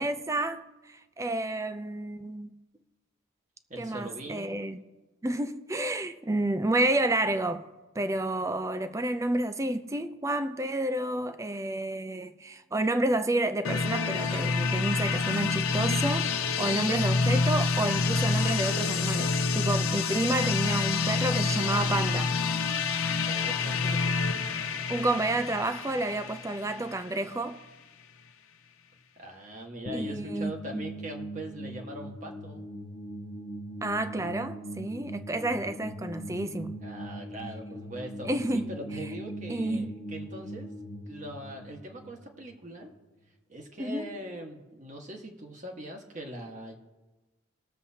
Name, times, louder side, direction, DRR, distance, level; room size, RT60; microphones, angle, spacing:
voice 1, 0.0-2.5 3.8-4.8 5.2-7.6 7.9-22.3 24.9-27.6 29.9-30.8 33.8-36.8 38.2-38.7 39.5-39.9 43.8-44.1, right 2 dB, 15° right, 0.4 m, -30 dB
voice 2, 3.7-4.6 23.2-24.1 29.2-32.7 34.1-34.3 36.8-40.7 41.1-42.9 43.5-46.8, right 1 dB, 35° right, 1.5 m, -41 dB
sound 1, 13.6-27.4, left 4 dB, 80° left, 0.7 m, -28 dB
sound 2, 29.9-43.0, right 1 dB, 50° left, 1.0 m, -40 dB
20.5 x 7.4 x 2.8 m
head